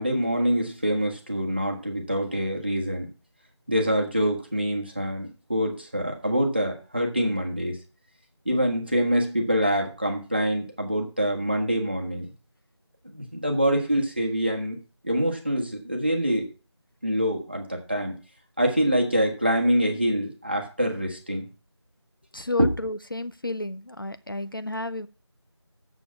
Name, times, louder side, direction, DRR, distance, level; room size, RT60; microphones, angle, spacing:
voice 1, 0.0-3.1 3.7-7.8 8.4-12.3 13.0-14.8 15.0-16.4 17.0-18.1 18.6-21.5 22.6-22.7, equal, 20° right, 2 dB, 1.3 m, -25 dB
voice 2, 22.3-25.1, left 2 dB, 50° left, 12 dB, 0.5 m, -32 dB
7.1 x 6.7 x 7.1 m, 0.34 s
figure-of-eight pair, 180°, 15 cm